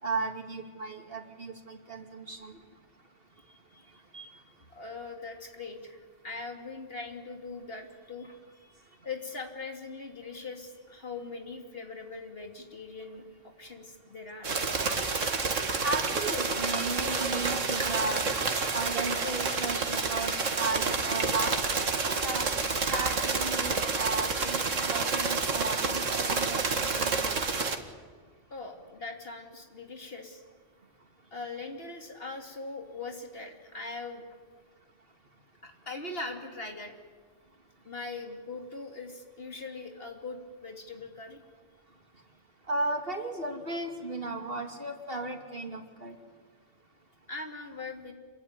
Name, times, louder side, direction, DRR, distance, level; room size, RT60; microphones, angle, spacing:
voice 1, 0.0-2.6 4.1-4.3 14.8-15.0 15.8-18.3 18.7-22.5 22.9-27.4 42.7-46.2, right 3 dB, 50° right, 4 dB, 2.8 m, -35 dB
voice 2, 3.4-3.9 4.7-14.5 28.5-30.4 31.3-34.3 35.6-36.9 37.8-41.4 47.3-48.1, left 3 dB, 50° left, 3 dB, 3.2 m, -41 dB
sound 1, 14.4-27.8, right 4 dB, 80° right, 2.2 m, -29 dB
27.5 x 22.0 x 9.8 m, 1.5 s
omnidirectional pair, 1.3 m